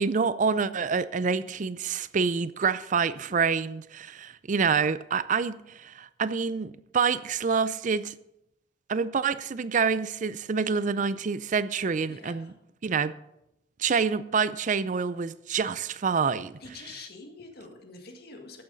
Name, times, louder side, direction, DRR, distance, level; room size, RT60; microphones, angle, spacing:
voice 1, 0.0-8.1 8.9-12.5 12.8-13.1 13.8-16.6, right 5 dB, 45° right, 0.5 m, -27 dB
voice 2, 12.1-12.5 15.5-15.7 16.6-18.6, left 3 dB, 60° left, 1.8 m, -46 dB
13.5 x 9.5 x 4.0 m
head